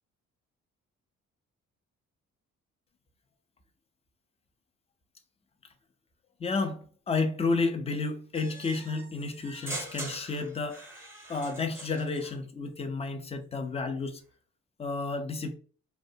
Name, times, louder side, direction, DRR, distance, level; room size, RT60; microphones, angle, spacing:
voice 1, 6.4-10.8 11.3-14.2 14.8-15.6, left 3 dB, 20° left, 0.4 m, -31 dB
sound 1, 8.3-12.4, right 1 dB, 10° right, 0.7 m, -43 dB
2.5 x 2.1 x 2.6 m
cardioid pair, 90°, 30 cm